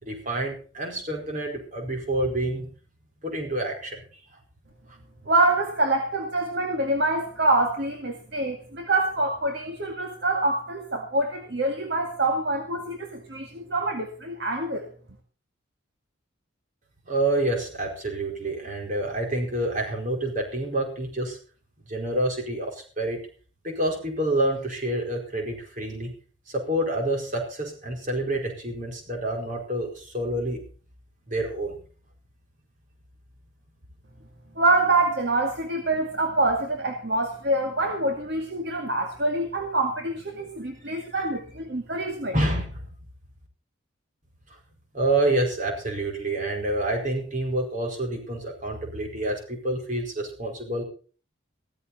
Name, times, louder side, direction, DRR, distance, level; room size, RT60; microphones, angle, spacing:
voice 1, 0.0-2.7 3.2-4.0 17.1-21.4 21.9-23.2 23.6-26.1 26.5-30.6 31.3-31.8 41.1-41.2 42.3-42.9 44.9-50.8, right 1 dB, 40° right, 1 dB, 4.7 m, -28 dB
voice 2, 5.3-14.9 34.6-42.3, right 2 dB, 55° right, 4 dB, 2.0 m, -25 dB
16.0 x 14.0 x 4.3 m, 0.39 s
head